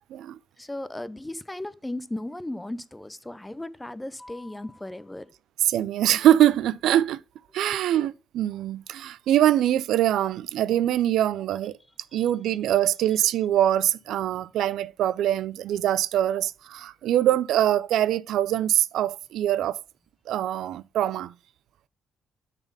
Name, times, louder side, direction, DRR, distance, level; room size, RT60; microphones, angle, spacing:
voice 1, 0.6-5.3 12.1-12.2, left 1 dB, 10° left, 0.5 m, -36 dB
voice 2, 5.6-7.2 7.5-11.7 12.1-19.8 20.3-21.3, right 12 dB, 80° right, 0.3 m, -23 dB
6.9 x 4.2 x 5.4 m
cardioid pair, 80°, 0 cm